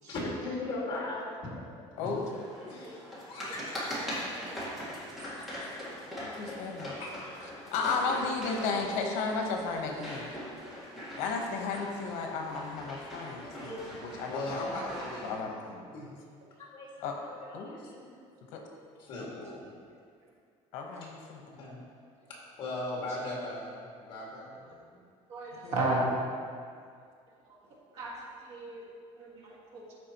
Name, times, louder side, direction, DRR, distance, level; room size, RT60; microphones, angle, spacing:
voice 1, 0.1-2.1 2.6-3.0 3.3-5.7 7.0-7.3 13.4-13.8 14.3-15.6 15.9-16.1 16.6-18.1 19.0-19.7 21.6-21.8 22.3-25.0, left 2 dB, 40° left, -4 dB, 2.0 m, -39 dB
voice 2, 2.0-2.3 6.2-6.9 7.7-10.3 11.2-14.6 15.2-15.9 17.0-17.2 17.5-17.7 18.5-18.6 20.7-21.4 25.6-26.0, left 4 dB, 75° left, 1 dB, 1.0 m, -34 dB
sound 1, 2.2-15.3, equal, ahead, 1.6 m, -41 dB
voice 3, 25.3-26.0 27.9-28.2 28.5-28.9 29.2-29.8, right 2 dB, 60° right, -3 dB, 1.8 m, -34 dB
13.0 x 4.8 x 3.0 m, 2.2 s
cardioid pair, 175°, 12 cm